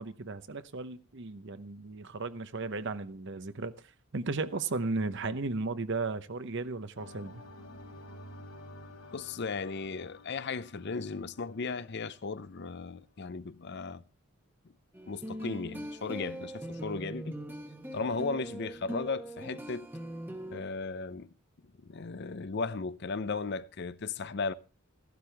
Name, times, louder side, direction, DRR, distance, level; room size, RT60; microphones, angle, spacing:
voice 1, 0.0-3.7 4.1-7.4, right 3 dB, 55° right, 0.8 m, -35 dB
sound 1, 7.0-12.9, left 1 dB, 65° left, 2.9 m, -51 dB
voice 2, 9.1-14.0 15.1-17.4 17.9-19.9 20.5-21.3 21.9-24.5, left 4 dB, 50° left, 0.6 m, -36 dB
sound 2, 14.9-20.6, right 1 dB, 10° right, 1.0 m, -41 dB
15.0 x 12.0 x 3.4 m
head